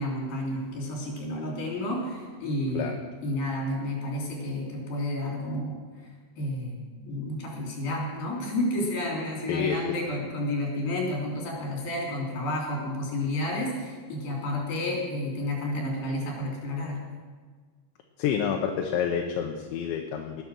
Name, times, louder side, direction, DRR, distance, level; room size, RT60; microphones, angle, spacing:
voice 1, 0.0-3.0 3.2-5.8 6.4-17.0, left 1 dB, 55° left, -2 dB, 5.0 m, -31 dB
voice 2, 18.2-20.4, left 8 dB, 80° left, 3 dB, 3.2 m, -28 dB
19.5 x 9.3 x 6.3 m, 1.5 s
omnidirectional pair, 5.2 m